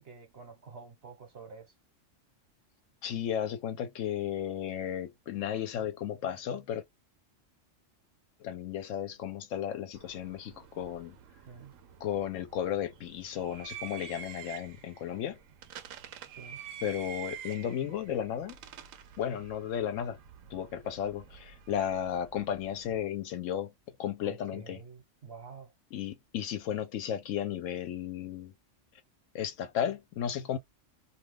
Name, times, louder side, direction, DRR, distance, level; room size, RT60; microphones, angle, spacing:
voice 1, 0.0-1.7 11.5-11.7 16.4-16.7 24.2-25.7, right 5 dB, 55° right, 1.2 m, -48 dB
voice 2, 3.0-6.8 8.4-11.2 12.0-15.4 16.8-18.5 19.2-20.2 20.5-24.8 25.9-28.5 29.3-30.6, left 9 dB, 80° left, 0.9 m, -34 dB
sound 1, 9.9-23.0, right 9 dB, 85° right, 1.0 m, -48 dB
2.5 x 2.3 x 3.3 m
omnidirectional pair, 1.3 m